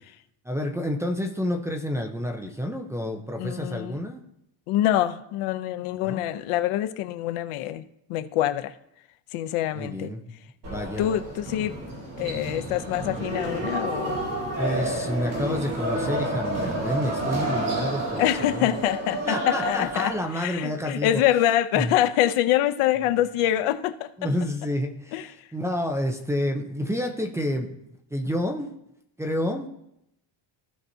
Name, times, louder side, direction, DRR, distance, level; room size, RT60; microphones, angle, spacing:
voice 1, 0.4-4.2 6.0-6.2 9.7-10.3 10.6-11.1 14.6-18.7 19.3-21.2 21.7-21.9 24.2-25.2 25.5-27.7 28.1-28.7 29.2-29.7, left 1 dB, 5° right, 0 dB, 0.5 m, -29 dB
voice 2, 3.4-4.0 4.7-8.8 9.3-10.1 11.0-11.7 12.2-14.2 18.2-24.1 25.1-25.3, left 12 dB, 85° left, 12 dB, 0.7 m, -25 dB
sound 1, 10.6-20.2, right 1 dB, 40° right, 3.3 m, -30 dB
16.0 x 5.6 x 2.7 m, 0.79 s
cardioid pair, 175°, 50 cm